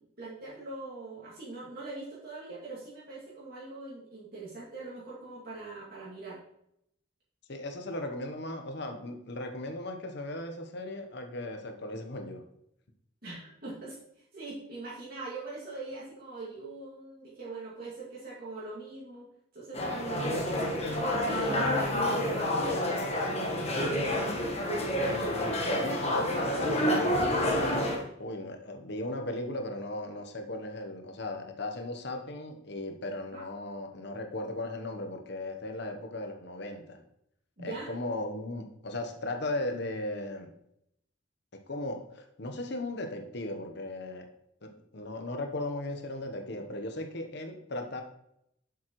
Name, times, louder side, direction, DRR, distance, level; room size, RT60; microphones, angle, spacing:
voice 1, 0.2-6.4 13.2-19.3 19.5-23.3 33.3-33.5 37.6-37.9, right 3 dB, 50° right, -8 dB, 2.2 m, -42 dB
voice 2, 7.5-12.4 25.0-27.9 28.2-37.0 37.6-40.5 41.5-44.3 44.6-48.0, left 1 dB, 55° left, 5 dB, 1.0 m, -37 dB
sound 1, 19.7-28.0, left 1 dB, 30° left, 1.4 m, -29 dB
7.6 x 7.2 x 3.1 m, 0.76 s
head